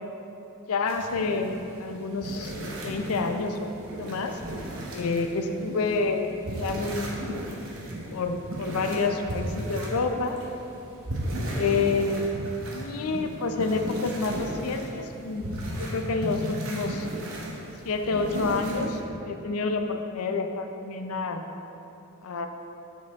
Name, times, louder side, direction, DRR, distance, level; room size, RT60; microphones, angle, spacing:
voice 1, 0.7-2.5 2.8-3.7 4.0-4.4 4.9-6.3 6.6-7.4 8.1-10.4 11.5-12.3 12.7-15.5 15.8-17.1 17.8-21.4 22.2-22.5, left 4 dB, 70° left, 6 dB, 0.5 m, -28 dB
sound 1, 0.9-19.0, right 1 dB, 65° right, 1.0 m, -35 dB
6.6 x 5.0 x 3.5 m, 2.9 s
head